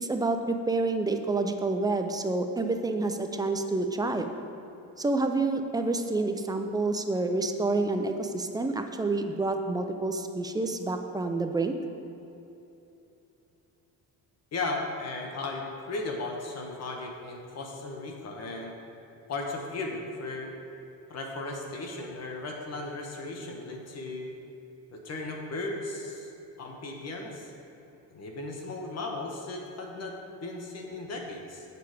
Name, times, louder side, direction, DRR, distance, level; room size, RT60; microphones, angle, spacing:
voice 1, 0.0-4.3 5.0-11.7, right 3 dB, 10° right, 5 dB, 0.4 m, -28 dB
voice 2, 14.5-18.7 19.3-20.5 21.1-24.4 24.9-26.3 26.6-27.5 28.1-31.6, left 2 dB, 45° left, 1 dB, 1.1 m, -36 dB
7.9 x 6.8 x 4.9 m, 2.9 s
cardioid pair, 140°, 37 cm